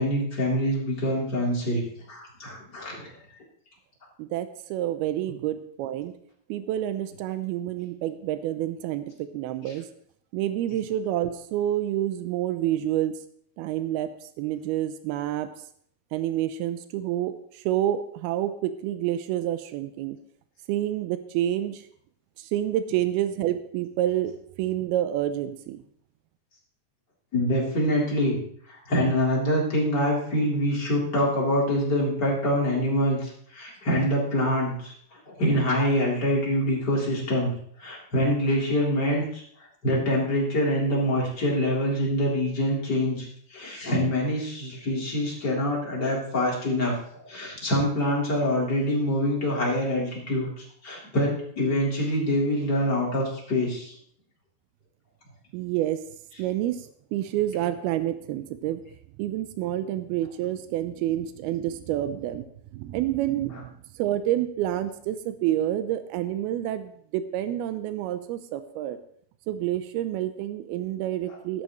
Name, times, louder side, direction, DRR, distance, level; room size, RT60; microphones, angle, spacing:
voice 1, 0.0-3.1 27.3-28.4 28.7-37.5 37.8-39.4 39.8-47.0 47.2-53.9, equal, 25° left, -4 dB, 3.9 m, -25 dB
voice 2, 4.2-6.1 6.5-9.9 10.3-13.2 13.6-15.5 16.1-20.2 20.7-21.9 22.4-25.8 55.5-56.0 56.4-58.8 59.2-62.4 62.7-63.7 63.9-69.0 69.5-71.6, right 12 dB, 90° right, 11 dB, 2.6 m, -28 dB
16.0 x 12.0 x 3.2 m, 0.63 s
omnidirectional pair, 4.4 m